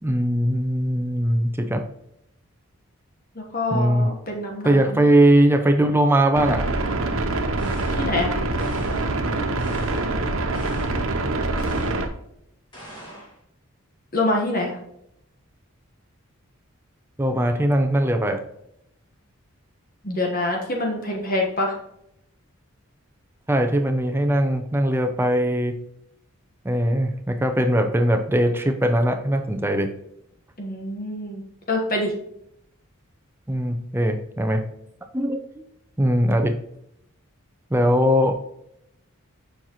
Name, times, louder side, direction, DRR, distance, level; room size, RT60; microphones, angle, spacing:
voice 1, 0.0-1.9 3.7-4.1 4.6-6.7 17.2-18.4 23.5-25.7 26.6-29.9 33.5-34.7 35.1-35.6 36.0-36.6 37.7-38.3, right 1 dB, 10° right, 6 dB, 0.5 m, -20 dB
voice 2, 3.3-5.0 8.0-8.4 14.1-14.8 20.0-21.7 30.6-31.4 31.7-32.1, left 2 dB, 40° left, 0 dB, 1.2 m, -25 dB
sound 1, 6.3-12.1, right 2 dB, 65° right, 0.8 m, -25 dB
sound 2, 7.6-8.2 8.6-9.2 9.6-10.2 10.5-11.1 11.6-12.1 12.7-13.4, right 1 dB, 20° left, 2.2 m, -41 dB
7.0 x 5.7 x 3.0 m, 0.76 s
head